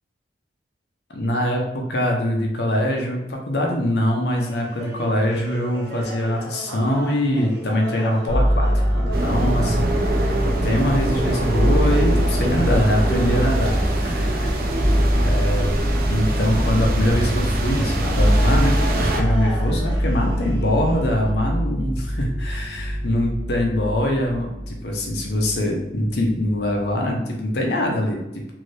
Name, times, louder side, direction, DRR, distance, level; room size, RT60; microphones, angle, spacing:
voice 1, 1.1-8.7 8.9-10.4 10.6-14.5 15.3-15.7 16.1-28.2, equal, 70° left, 1 dB, 0.7 m, -23 dB
sound 1, 4.3-21.3, right 1 dB, 80° right, 0.8 m, -37 dB
sound 2, 8.3-25.7 26.0-26.8, equal, 30° right, 0.9 m, -23 dB
sound 3, 9.1-19.2, right 1 dB, 55° right, 0.4 m, -25 dB
2.7 x 2.7 x 3.2 m, 0.87 s
head